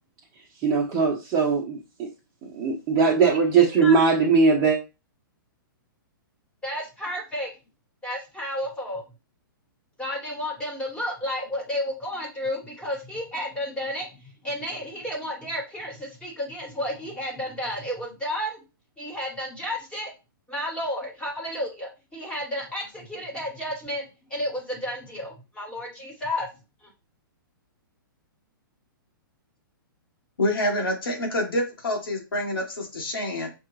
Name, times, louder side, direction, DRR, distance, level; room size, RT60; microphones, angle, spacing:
voice 1, 0.6-2.1 2.4-4.8, right 5 dB, 30° right, -2 dB, 0.9 m, -20 dB
voice 2, 6.6-7.5 8.0-9.0 10.0-18.6 19.0-20.1 20.5-24.0 24.3-26.5 26.8-26.9, left 1 dB, 10° left, -1 dB, 1.4 m, -32 dB
voice 3, 30.4-33.5, left 1 dB, 85° left, 1 dB, 1.3 m, -27 dB
5.7 x 2.3 x 3.2 m, 0.28 s
hypercardioid pair, 130°, 12 cm